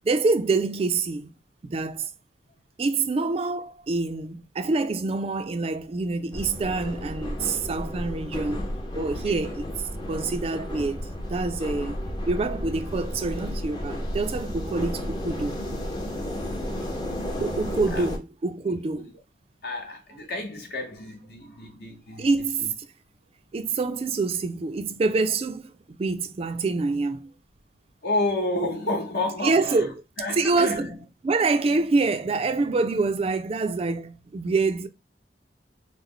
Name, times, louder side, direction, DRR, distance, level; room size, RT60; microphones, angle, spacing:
voice 1, 0.0-1.3 1.6-2.1 2.8-8.7 8.9-9.7 10.1-12.0 12.3-15.5 17.4-19.1 22.2-22.7 23.5-25.7 26.0-27.3 29.4-29.9 30.3-30.9 31.2-34.9, right 3 dB, 35° right, 0.3 m, -26 dB
sound 1, 6.3-18.2, equal, 25° left, 0.6 m, -32 dB
voice 2, 16.2-16.8 17.9-18.0 19.0-19.1 19.6-22.3 22.6-22.7 28.0-29.9 30.2-31.0, left 2 dB, 60° left, 0.9 m, -30 dB
3.2 x 2.0 x 3.6 m
head